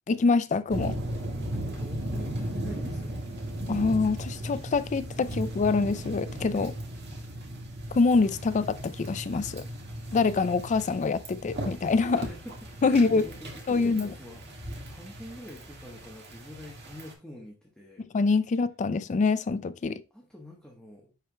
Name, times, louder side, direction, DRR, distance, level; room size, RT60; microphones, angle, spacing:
voice 1, 0.1-1.0 3.7-6.7 7.9-9.6 10.1-12.3 12.8-13.3 13.7-14.1 18.1-20.0, left 4 dB, 35° left, 0.4 m, -25 dB
sound 1, 0.7-17.1, right 1 dB, 55° right, 1.7 m, -37 dB
voice 2, 1.8-3.2 12.1-18.1 20.1-21.1, left 1 dB, 5° left, 1.1 m, -46 dB
10.5 x 4.4 x 2.2 m
head